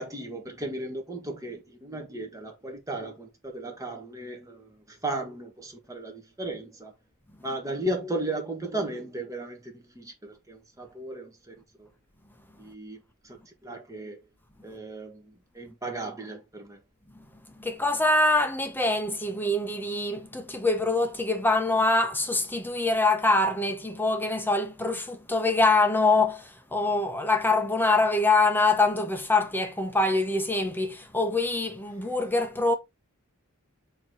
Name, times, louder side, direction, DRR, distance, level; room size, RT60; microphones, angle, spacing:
voice 1, 0.0-6.9 7.4-11.3 11.8-11.9 12.6-13.0 13.2-13.4 13.6-14.2 14.6-15.2 15.5-16.8, right 2 dB, 15° right, 1.4 m, -35 dB
voice 2, 17.5-32.7, left 2 dB, 10° left, 1.0 m, -24 dB
7.1 x 3.2 x 4.5 m
head